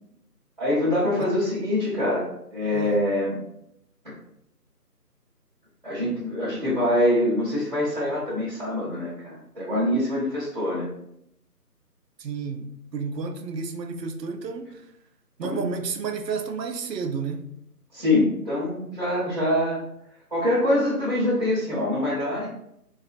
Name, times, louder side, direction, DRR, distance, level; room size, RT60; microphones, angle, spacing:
voice 1, 0.6-2.2 2.5-3.4 5.8-10.9 15.4-15.7 17.9-19.8 20.3-22.6, left 1 dB, 35° right, -10 dB, 0.8 m, -24 dB
voice 2, 12.2-14.9 15.4-17.5, right 5 dB, 85° right, 6 dB, 0.6 m, -31 dB
2.4 x 2.4 x 2.4 m, 0.76 s
figure-of-eight pair, 165°, 48 cm